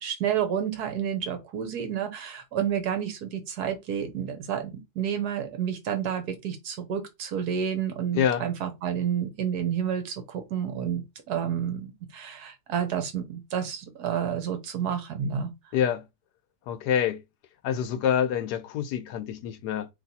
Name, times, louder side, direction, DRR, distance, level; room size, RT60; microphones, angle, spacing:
voice 1, 0.0-15.5, right 8 dB, 70° right, 1.4 m, -30 dB
voice 2, 15.7-16.0 16.7-17.2 17.6-19.9, left 9 dB, 80° left, 1.2 m, -26 dB
3.2 x 2.9 x 4.1 m
omnidirectional pair, 1.8 m